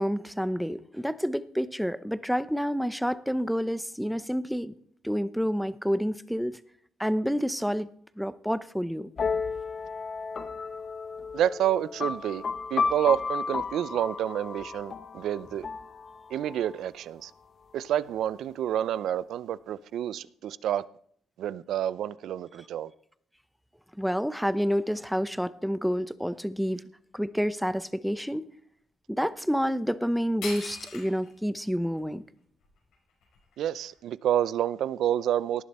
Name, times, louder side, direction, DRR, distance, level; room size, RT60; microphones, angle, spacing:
voice 1, 0.0-4.7 5.0-6.6 7.0-7.9 8.2-9.1 24.0-26.8 27.1-28.5 29.1-32.2, equal, ahead, 0.7 m, -29 dB
sound 1, 9.2-16.7, left 5 dB, 45° left, 1.0 m, -33 dB
voice 2, 11.3-12.4 12.7-15.7 16.3-17.3 17.7-20.8 21.4-22.9 33.6-35.6, right 11 dB, 75° right, 0.5 m, -29 dB
sound 2, 30.0-30.1 30.4-31.4 31.9-32.0 32.6-34.0, left 4 dB, 85° left, 5.1 m, -41 dB
18.5 x 10.0 x 4.3 m
cardioid pair, 90°, 0 cm